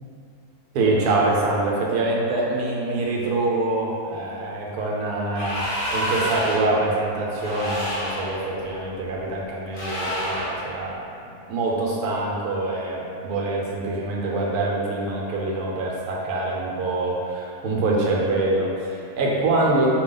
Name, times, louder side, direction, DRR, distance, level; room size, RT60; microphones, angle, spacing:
voice 1, 0.7-11.0 11.5-19.9, right 2 dB, 90° right, -3 dB, 1.3 m, -25 dB
sound 1, 5.3-6.7 7.4-8.4 9.7-10.6, equal, 90° left, 1.5 m, -28 dB
5.0 x 2.3 x 3.8 m, 2.6 s
omnidirectional pair, 1.6 m